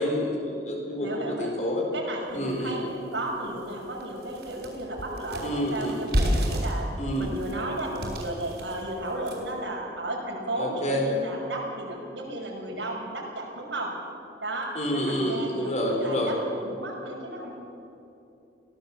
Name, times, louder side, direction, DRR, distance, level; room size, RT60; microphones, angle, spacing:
voice 1, 0.0-1.8 2.3-2.8 5.4-6.0 7.0-7.3 10.6-11.0 14.7-16.3, equal, 40° left, 0 dB, 4.4 m, -28 dB
voice 2, 1.0-1.5 1.9-6.9 7.2-13.9 14.4-17.5, right 1 dB, 75° right, -2 dB, 6.2 m, -34 dB
sound 1, 2.5-2.6 3.1-3.2 3.6-9.6, equal, 60° right, 5.6 m, -31 dB
23.0 x 17.5 x 7.4 m, 2.8 s
head